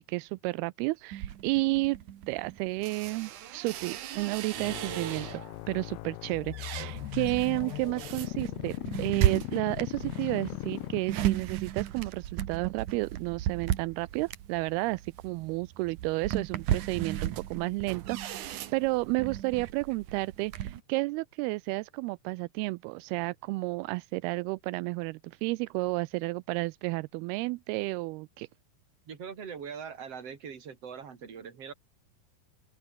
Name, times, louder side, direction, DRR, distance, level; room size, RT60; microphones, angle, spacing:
voice 1, 0.0-2.0 2.3-5.4 5.7-28.5, right 23 dB, 85° right, 2.5 m, -32 dB
sound 1, 1.1-5.6 6.1-20.8, right 12 dB, 60° right, 2.5 m, -35 dB
sound 2, 4.6-11.5, left 23 dB, 85° left, 2.5 m, -39 dB
voice 2, 29.1-31.7, right 7 dB, 40° right, 3.9 m, -42 dB
open air
omnidirectional pair, 4.5 m